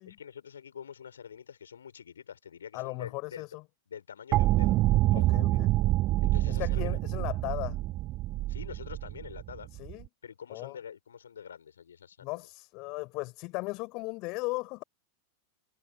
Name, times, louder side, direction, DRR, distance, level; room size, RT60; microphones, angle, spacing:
voice 1, 0.1-3.4 3.9-4.8 5.0-5.6 6.2-7.0 8.5-9.7 10.2-12.3, left 7 dB, 70° left, 5.1 m, -46 dB
voice 2, 2.7-3.6 5.1-5.7 6.5-7.8 9.8-10.1 10.5-10.8 12.2-14.8, left 25 dB, 40° left, 4.8 m, -37 dB
sound 1, 4.3-10.0, right 17 dB, 35° right, 1.5 m, -27 dB
figure-of-eight pair, 90°, 0 cm